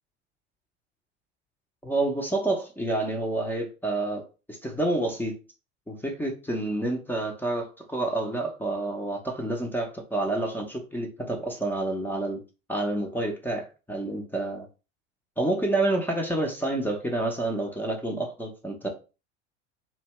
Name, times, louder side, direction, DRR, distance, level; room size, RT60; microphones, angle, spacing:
voice 1, 1.8-5.4 5.9-12.4 12.7-14.7 15.4-18.9, right 2 dB, 5° left, 0.5 m, -29 dB
2.7 x 2.2 x 2.9 m
hypercardioid pair, 85°, 35 cm